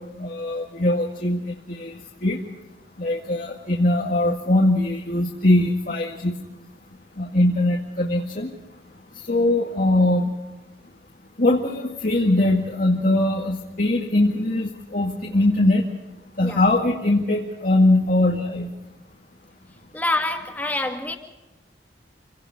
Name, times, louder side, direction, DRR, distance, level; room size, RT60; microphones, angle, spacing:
voice 1, 0.0-2.4 3.0-6.4 7.2-8.5 9.2-10.3 11.4-15.9 16.4-18.7, left 1 dB, 50° left, 2.1 m, -21 dB
voice 2, 19.9-21.2, left 2 dB, 10° left, 2.3 m, -26 dB
28.0 x 18.0 x 5.4 m
head